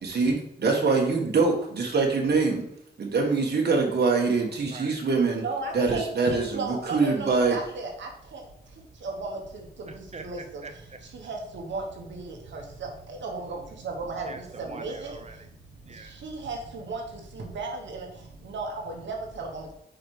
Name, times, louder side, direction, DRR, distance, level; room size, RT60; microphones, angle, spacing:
voice 1, 0.0-2.6 3.0-5.4 5.7-7.6, right 4 dB, 65° right, 0 dB, 1.6 m, -24 dB
voice 2, 5.4-7.9 10.2-10.4 11.3-11.4 11.7-11.8 13.2-13.3 14.1-14.3 14.8-14.9 16.5-16.6 16.9-17.0 17.5-17.7 18.5-18.7 19.1-19.5, right 4 dB, 90° right, 1 dB, 1.3 m, -32 dB
voice 3, 10.1-11.0 14.3-15.4 15.9-16.1, right 3 dB, 40° right, 7 dB, 0.7 m, -44 dB
5.1 x 4.9 x 4.8 m, 0.76 s
cardioid pair, 70°, 18 cm